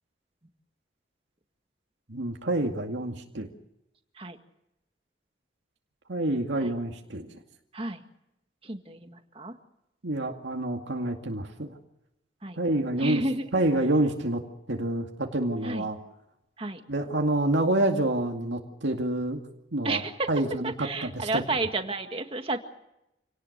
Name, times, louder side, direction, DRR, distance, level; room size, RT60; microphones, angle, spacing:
voice 1, 2.1-3.5 6.1-7.4 10.0-11.8 12.5-13.2 13.5-14.4 14.7-16.0 16.9-19.4 19.7-20.0 20.3-21.4, right 1 dB, 80° right, 2 dB, 2.3 m, -27 dB
voice 2, 8.6-9.5 12.4-12.6 13.0-13.6 15.6-15.9 16.6-16.8 19.8-20.3 20.6-22.6, right 2 dB, 30° right, 6 dB, 1.9 m, -31 dB
28.0 x 18.5 x 6.8 m, 0.86 s
head